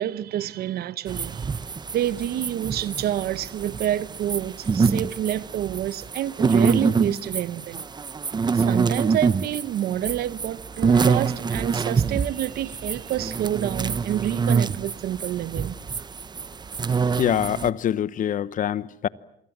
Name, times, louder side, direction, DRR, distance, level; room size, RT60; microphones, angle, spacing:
voice 1, 0.0-1.5 1.9-7.8 8.5-15.8, right 12 dB, 65° right, 1.1 m, -28 dB
sound 1, 1.1-17.7, right 5 dB, 25° right, 0.9 m, -25 dB
voice 2, 17.2-19.1, left 10 dB, 50° left, 0.9 m, -24 dB
27.5 x 24.5 x 7.4 m
cardioid pair, 110°, 17 cm